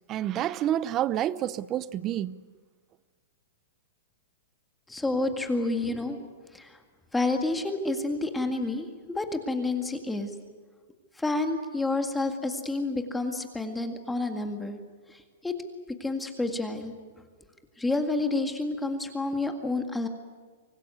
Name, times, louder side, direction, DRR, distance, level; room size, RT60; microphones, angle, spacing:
voice 1, 0.1-2.4, right 11 dB, 25° right, 0.6 m, -28 dB
voice 2, 4.9-6.2 6.5-6.8 7.1-10.3 11.2-14.8 15.1-15.5 16.0-16.9 17.8-20.1, left 2 dB, 5° left, 1.9 m, -29 dB
25.0 x 18.5 x 9.4 m
hypercardioid pair, 155°, 0 cm